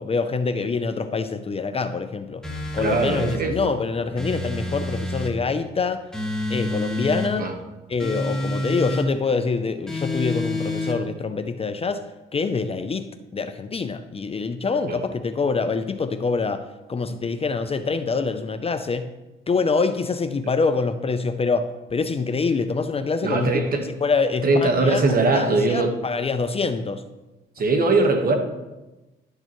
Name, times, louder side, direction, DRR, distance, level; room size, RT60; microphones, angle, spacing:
voice 1, 0.0-2.4 2.7-6.1 6.5-7.5 7.9-12.0 12.3-19.1 19.5-23.5 24.0-25.0 25.3-27.0, left 4 dB, 30° left, 10 dB, 0.5 m, -25 dB
sound 1, 2.4-3.4 4.2-5.4 6.1-7.3 8.0-9.1 9.9-11.0, left 1 dB, 5° left, 1.6 m, -28 dB
voice 2, 2.8-3.6 7.4-7.5 14.9-15.0 23.2-23.9 24.4-26.0 27.6-28.4, right 3 dB, 45° right, 5 dB, 1.3 m, -21 dB
11.5 x 6.6 x 3.1 m, 1.1 s
cardioid pair, 90°, 20 cm